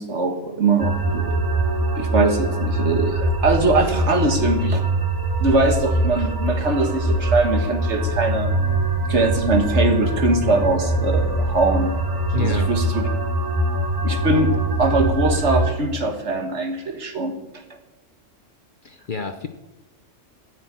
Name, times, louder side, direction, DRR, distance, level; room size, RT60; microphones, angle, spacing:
voice 1, 0.0-1.5 1.9-4.8 5.4-8.5 9.1-11.9 12.4-13.1 14.0-17.3, right 2 dB, 60° right, 5 dB, 1.8 m, -22 dB
sound 1, 0.8-15.7, right 1 dB, 20° right, 0.7 m, -23 dB
voice 2, 12.3-12.7 18.8-19.5, left 5 dB, 45° left, 7 dB, 0.8 m, -28 dB
13.0 x 6.4 x 9.0 m, 1.0 s
omnidirectional pair, 1.4 m